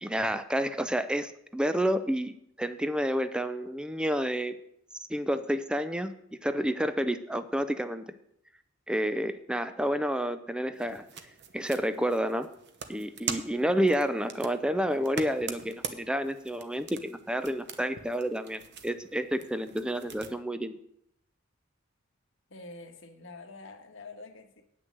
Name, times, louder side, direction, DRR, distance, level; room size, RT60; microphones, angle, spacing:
voice 1, 0.0-4.5 5.1-6.1 6.4-8.0 8.9-11.1 11.5-12.5 12.9-20.8, equal, 5° right, 10 dB, 0.5 m, -29 dB
sound 1, 10.7-20.3, right 6 dB, 60° right, 1.0 m, -43 dB
voice 2, 22.5-24.6, left 3 dB, 70° left, 4 dB, 1.5 m, -46 dB
9.4 x 6.2 x 7.5 m, 0.73 s
head